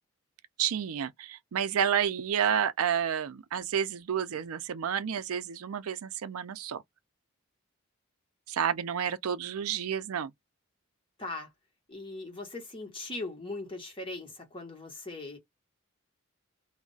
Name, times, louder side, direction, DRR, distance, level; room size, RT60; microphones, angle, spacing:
voice 1, 0.6-6.8 8.5-10.3, right 8 dB, 90° right, 0.4 m, -30 dB
voice 2, 11.2-11.5 11.9-15.4, left 2 dB, 25° left, 1.0 m, -39 dB
2.3 x 2.1 x 3.8 m
head